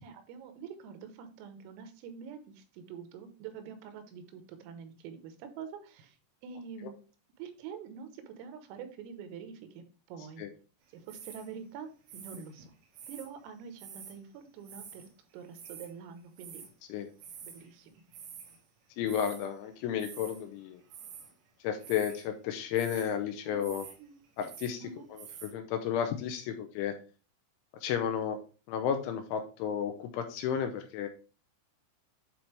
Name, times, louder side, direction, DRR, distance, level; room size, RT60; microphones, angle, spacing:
voice 1, 0.0-6.2 6.4-7.0 7.4-10.5 10.9-12.7 13.1-15.1 15.3-16.6 17.4-17.9 23.5-23.7 24.0-24.2 24.8-25.1, right 7 dB, 90° right, 8 dB, 3.6 m, -46 dB
sound 1, 11.1-11.5 12.1-13.3 13.8-14.2 14.6-15.1 15.3-15.9 16.4-16.7 17.2-17.7 18.0-18.6 19.1-19.5 20.0-20.4 20.8-21.3 21.8-22.3 22.7-23.1 23.6-24.0 24.2-24.8 25.2-25.5, right 7 dB, 70° right, 3.6 m, -48 dB
voice 2, 19.0-20.8 21.6-23.9 24.4-26.9 27.8-28.4 28.7-31.1, left 8 dB, 85° left, 6 dB, 2.9 m, -33 dB
9.1 x 4.3 x 3.3 m, 0.36 s
omnidirectional pair, 5.9 m